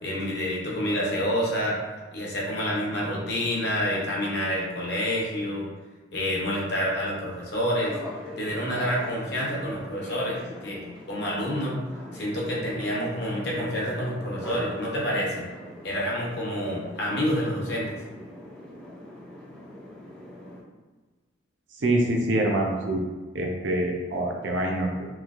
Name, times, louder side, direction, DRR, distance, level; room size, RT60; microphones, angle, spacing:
voice 1, 0.0-1.8 2.1-5.7 6.1-8.0 8.4-11.8 12.1-15.5 15.8-18.0, equal, 55° left, -4 dB, 0.8 m, -28 dB
sound 1, 7.8-20.6, left 1 dB, 5° left, 0.3 m, -42 dB
voice 2, 21.8-23.0 23.3-25.1, right 1 dB, 65° right, 1 dB, 0.5 m, -25 dB
3.1 x 2.7 x 2.4 m, 1.3 s
head